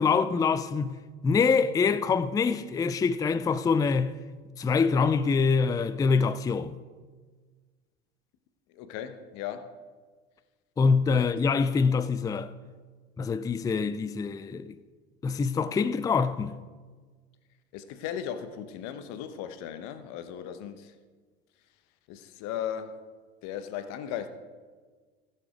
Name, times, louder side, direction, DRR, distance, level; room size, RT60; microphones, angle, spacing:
voice 1, 0.0-4.2 4.6-6.8 10.8-12.5 13.2-14.8 15.2-16.5, left 5 dB, 10° left, 0.4 m, -25 dB
voice 2, 8.7-9.7 11.2-11.3 17.7-20.9 22.1-23.0 23.4-24.3, left 9 dB, 55° left, 1.1 m, -37 dB
14.0 x 7.1 x 5.0 m
hypercardioid pair, 80°, 33 cm